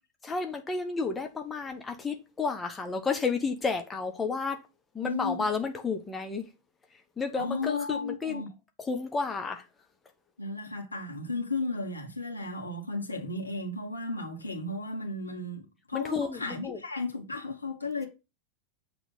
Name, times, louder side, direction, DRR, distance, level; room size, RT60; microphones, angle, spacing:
voice 1, 0.2-4.6 4.9-6.5 7.2-8.4 8.8-9.7 15.9-16.8, left 4 dB, 15° left, 1.0 m, -31 dB
voice 2, 5.0-5.5 7.4-8.5 10.4-18.1, left 2 dB, 80° left, 1.8 m, -34 dB
7.2 x 3.4 x 5.5 m
figure-of-eight pair, 90°, 0 cm